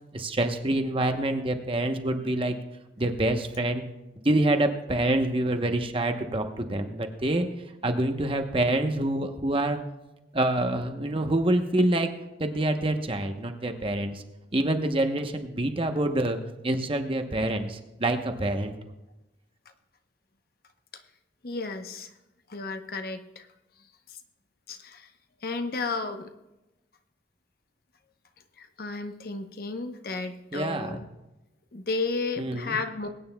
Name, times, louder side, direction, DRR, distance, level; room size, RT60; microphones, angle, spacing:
voice 1, 0.1-2.6 3.0-3.8 4.2-7.5 7.8-9.8 10.3-12.1 12.4-14.2 14.5-16.4 16.6-18.7 30.5-31.0 32.4-32.8, right 1 dB, 30° right, 6 dB, 0.9 m, -26 dB
voice 2, 21.4-22.1 22.5-23.5 24.1-24.2 24.7-25.1 25.4-26.3 28.6-31.0 31.7-33.1, left 3 dB, 55° left, 7 dB, 0.8 m, -33 dB
21.5 x 9.4 x 2.2 m, 0.99 s
head